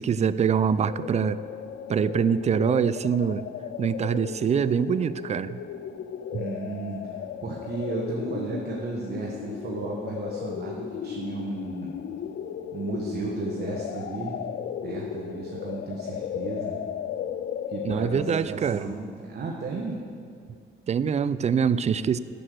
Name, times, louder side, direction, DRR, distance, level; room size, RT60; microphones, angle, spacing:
voice 1, 0.0-1.4 1.9-3.4 3.8-5.6 6.3-6.4 17.8-18.9 20.9-22.2, right 7 dB, 35° right, 16 dB, 0.3 m, -24 dB
sound 1, 0.8-18.4, left 9 dB, 60° left, 0.5 m, -35 dB
voice 2, 6.3-12.0 12.7-14.4 14.8-16.8 17.7-20.0, right 3 dB, 50° right, -2 dB, 1.3 m, -34 dB
8.6 x 6.6 x 7.7 m, 2.3 s
cardioid pair, 90°, 20 cm